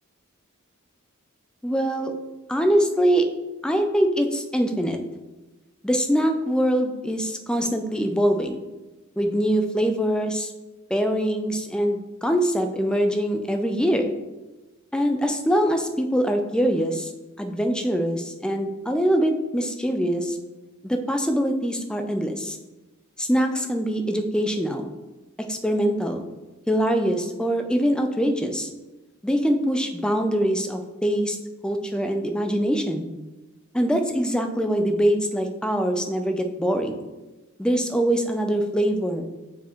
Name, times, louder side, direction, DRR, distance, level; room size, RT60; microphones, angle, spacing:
voice 1, 1.6-2.1 2.5-3.2 3.6-5.0 5.8-8.6 9.2-10.5 10.9-14.1 14.9-17.1 17.4-20.4 20.8-22.6 23.2-24.9 25.4-26.3 26.7-28.7 29.2-31.4 31.6-33.1 33.7-37.0 37.6-39.4, equal, 5° left, 5 dB, 0.4 m, -23 dB
7.0 x 4.8 x 3.0 m, 1.1 s
head